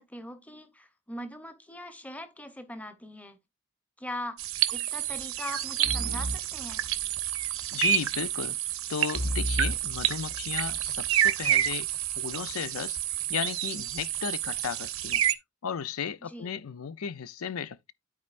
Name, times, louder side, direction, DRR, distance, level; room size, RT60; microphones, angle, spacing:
voice 1, 0.0-3.4 4.0-6.9 16.2-16.5, left 1 dB, 5° left, 0.9 m, -41 dB
sound 1, 4.4-15.3, right 11 dB, 75° right, 0.9 m, -29 dB
sound 2, 5.8-7.5 9.1-10.9, equal, 55° left, 5.7 m, -34 dB
voice 2, 7.7-8.6 8.9-11.9 12.1-15.2 15.6-17.9, left 7 dB, 85° left, 0.5 m, -35 dB
13.0 x 4.4 x 2.5 m
head